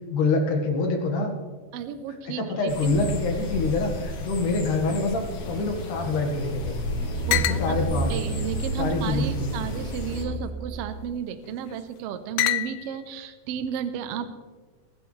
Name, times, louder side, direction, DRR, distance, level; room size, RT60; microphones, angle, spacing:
voice 1, 0.1-1.3 2.4-6.8 7.3-8.1 8.8-9.6, left 3 dB, 70° left, 3 dB, 3.2 m, -26 dB
voice 2, 1.7-3.0 7.3-7.8 8.1-14.3, right 8 dB, 75° right, 9 dB, 1.4 m, -33 dB
sound 1, 2.7-10.2, left 3 dB, 55° left, 2.1 m, -34 dB
sound 2, 4.8-6.4 6.7-6.8 7.3-7.7 8.4-9.3 10.1-10.5 11.4-11.8 12.4-13.0, left 15 dB, 90° left, 1.6 m, -30 dB
sound 3, 6.6-10.9 11.4-11.5, right 2 dB, 60° right, 1.0 m, -31 dB
20.5 x 11.5 x 3.3 m, 1.4 s
omnidirectional pair, 3.9 m